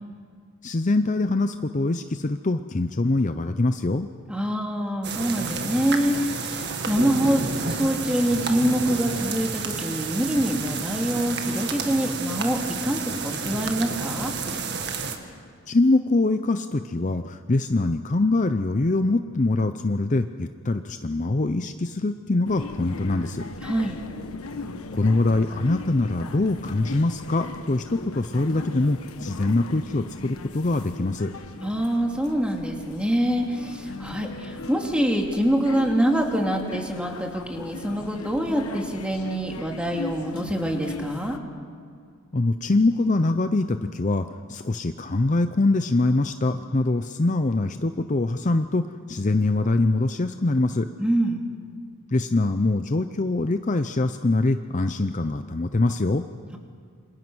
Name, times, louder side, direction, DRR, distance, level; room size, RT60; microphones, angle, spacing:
voice 1, 0.6-4.1 15.7-23.4 24.9-31.3 42.3-50.9 52.1-56.2, left 2 dB, 35° left, 9 dB, 0.6 m, -23 dB
voice 2, 4.3-14.3 23.6-24.0 31.6-41.4 51.0-51.4, equal, 5° right, 1 dB, 2.4 m, -25 dB
sound 1, 5.0-15.2, right 4 dB, 50° right, 1.9 m, -30 dB
sound 2, 22.4-41.4, left 3 dB, 85° left, 1.3 m, -38 dB
28.0 x 25.0 x 6.2 m, 2.1 s
head